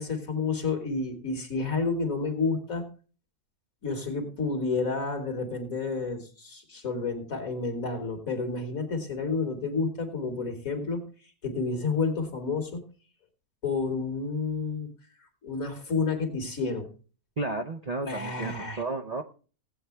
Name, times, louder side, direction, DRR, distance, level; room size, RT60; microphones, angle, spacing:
voice 1, 0.0-2.9 3.8-11.0 11.4-12.8 13.6-14.9 15.4-16.9 18.0-18.8, left 4 dB, 60° left, 4 dB, 2.8 m, -30 dB
voice 2, 17.4-19.2, right 3 dB, 35° right, 4 dB, 0.6 m, -32 dB
17.0 x 8.4 x 3.3 m, 0.37 s
omnidirectional pair, 1.6 m